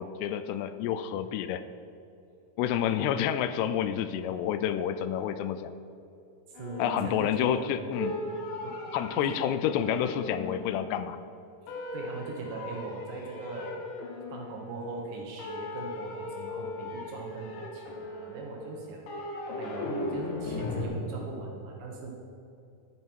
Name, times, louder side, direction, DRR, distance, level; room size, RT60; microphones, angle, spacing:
voice 1, 0.0-1.6 2.6-5.7 6.8-8.2 8.9-11.2, left 10 dB, 85° left, 12 dB, 2.6 m, -29 dB
sound 1, 6.6-7.6 7.9-11.2 11.7-15.1 15.4-20.8, left 2 dB, 65° left, 2.5 m, -38 dB
voice 2, 6.6-7.8 8.3-8.4 8.6-8.8 9.2-9.4 11.7-13.7 14.3-22.1, right 3 dB, 65° right, -1 dB, 2.4 m, -40 dB
11.0 x 9.3 x 4.6 m, 2.7 s
omnidirectional pair, 4.8 m